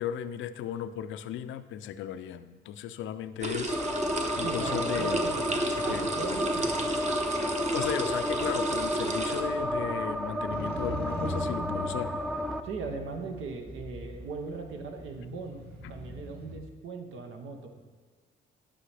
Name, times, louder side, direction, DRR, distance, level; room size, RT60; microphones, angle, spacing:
voice 1, 0.0-3.8 4.4-5.3 5.7-6.1 7.4-12.1 16.1-16.2, left 10 dB, 75° left, 12 dB, 0.4 m, -36 dB
sound 1, 3.4-9.4, right 1 dB, 35° right, 0.9 m, -32 dB
sound 2, 3.7-12.6, equal, ahead, 0.3 m, -32 dB
voice 2, 4.4-7.0 12.6-15.6 15.9-17.9, right 4 dB, 80° right, 4 dB, 0.9 m, -39 dB
Motorcycle, 10.5-16.6, left 1 dB, 55° right, 1.8 m, -40 dB
10.0 x 5.5 x 3.3 m, 1.5 s
cardioid pair, 90°, 20 cm